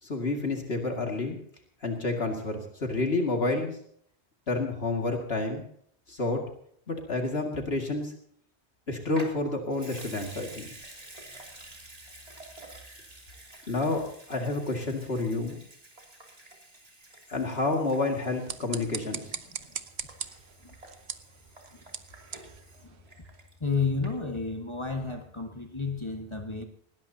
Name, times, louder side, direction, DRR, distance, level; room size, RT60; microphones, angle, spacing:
voice 1, 0.0-1.4 1.8-3.8 4.5-5.6 6.1-6.5 6.9-8.1 8.9-10.7 13.7-15.6 17.3-19.3, left 2 dB, 65° left, 2 dB, 2.5 m, -29 dB
Water tap faucet / Sink (filling or washing) / Liquid, 9.1-23.7 24.0-24.1, right 1 dB, 35° right, 3.1 m, -50 dB
sound 1, 18.2-23.5, right 7 dB, 75° right, 1.2 m, -41 dB
voice 2, 23.6-26.6, left 4 dB, 25° left, 3 dB, 1.7 m, -32 dB
20.0 x 18.5 x 2.8 m, 0.65 s
omnidirectional pair, 1.1 m